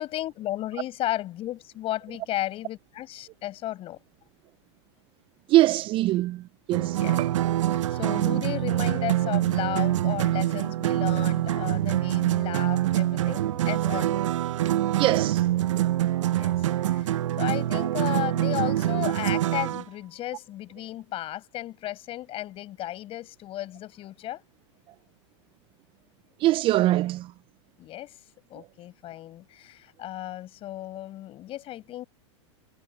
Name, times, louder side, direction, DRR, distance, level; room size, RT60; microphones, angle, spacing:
voice 1, 0.0-4.0 6.9-7.2 7.7-14.3 16.3-16.6 16.9-24.4 27.8-28.2 28.5-32.1, left 14 dB, 35° left, 6.3 m, -34 dB
voice 2, 5.5-7.3 15.0-15.4 15.7-15.9 26.4-27.3, right 16 dB, 35° right, 0.4 m, -23 dB
sound 1, 6.7-19.8, right 13 dB, 85° right, 0.6 m, -25 dB
hypercardioid pair, 125°, 16 cm